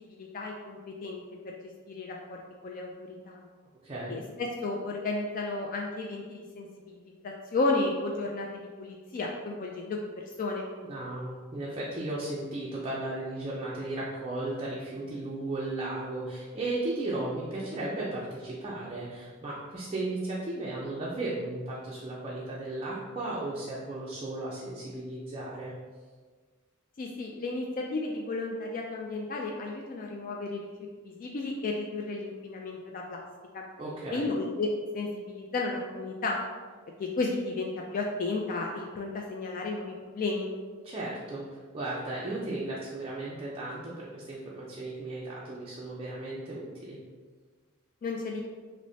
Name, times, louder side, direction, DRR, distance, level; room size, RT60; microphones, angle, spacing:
voice 1, 0.0-1.5 1.9-3.4 4.1-7.0 7.2-10.7 27.0-30.7 31.0-33.2 33.5-33.6 34.1-36.4 37.0-40.5 48.0-48.4, left 3 dB, 40° left, 0 dB, 0.3 m, -33 dB
voice 2, 3.8-4.2 10.8-25.7 33.8-34.3 40.8-41.5 41.7-47.0, right 2 dB, 25° right, -6 dB, 0.5 m, -35 dB
6.0 x 2.1 x 2.7 m, 1.5 s
head